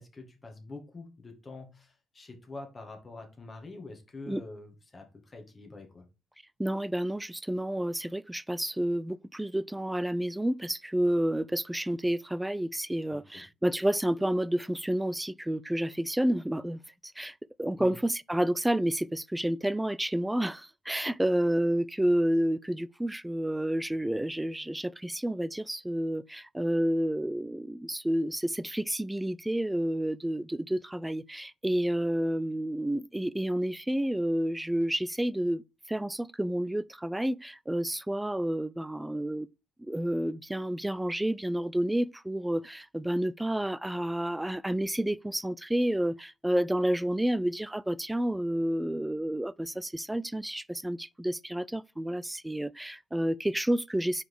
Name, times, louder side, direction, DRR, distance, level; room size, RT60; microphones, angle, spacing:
voice 1, 0.0-6.1 13.1-13.4 17.8-18.0, left 3 dB, 30° left, 1.9 m, -45 dB
voice 2, 6.6-35.6 35.9-39.5 39.8-54.2, right 1 dB, 10° right, 0.3 m, -30 dB
4.8 x 4.1 x 4.9 m
cardioid pair, 90°, 0 cm